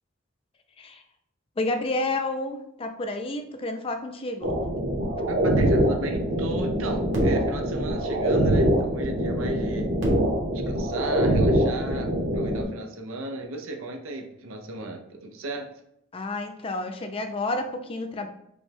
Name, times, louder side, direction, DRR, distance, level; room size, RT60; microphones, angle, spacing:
voice 1, 1.6-4.5 16.1-18.3, left 2 dB, 30° left, 6 dB, 0.4 m, -30 dB
sound 1, 4.4-12.6, right 1 dB, 65° right, 1.3 m, -24 dB
voice 2, 5.3-9.9 10.7-15.7, right 2 dB, 90° right, 3 dB, 0.7 m, -35 dB
5.2 x 2.3 x 3.4 m, 0.76 s
head